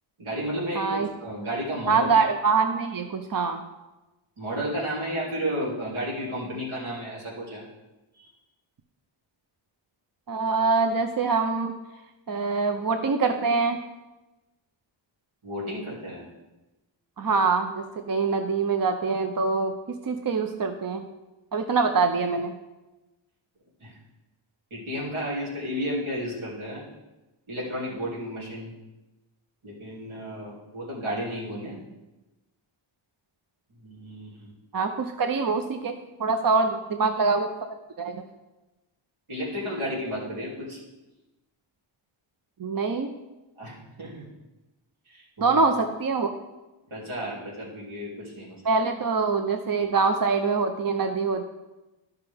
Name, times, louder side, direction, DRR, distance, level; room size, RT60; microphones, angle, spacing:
voice 1, 0.2-2.1 4.4-7.6 8.1-8.3 15.4-16.3 23.8-23.9 24.7-26.9 27.5-28.7 29.6-31.8 33.8-34.5 39.3-40.8 43.6-44.3 45.1-45.5 46.9-48.6, equal, 80° right, -6 dB, 2.9 m, -32 dB
voice 2, 0.7-1.1 1.9-3.6 10.3-11.8 12.3-13.8 17.2-21.0 21.5-22.5 34.7-37.5 38.0-38.2 42.6-43.1 45.4-46.3 48.6-51.4, right 4 dB, 45° right, 6 dB, 0.6 m, -24 dB
13.0 x 5.8 x 3.5 m, 1.1 s
wide cardioid pair, 80°, 48 cm